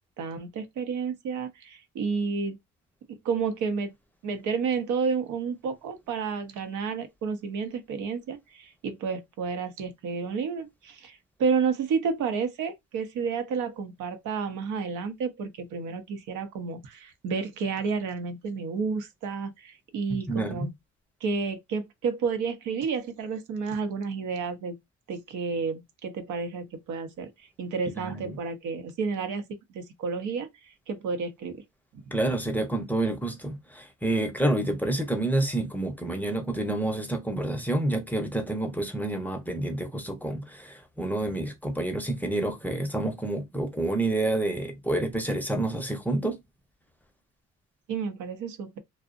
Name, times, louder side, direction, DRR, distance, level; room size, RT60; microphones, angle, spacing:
voice 1, 0.2-2.6 3.1-3.9 4.2-20.7 21.2-24.8 25.1-27.3 27.6-30.5 30.9-31.6 47.9-48.8, right 5 dB, 80° right, 0.6 m, -31 dB
voice 2, 20.1-20.7 28.0-28.4 32.1-46.4, right 2 dB, 5° left, 0.6 m, -28 dB
2.5 x 2.0 x 2.4 m
cardioid pair, 90°, 30 cm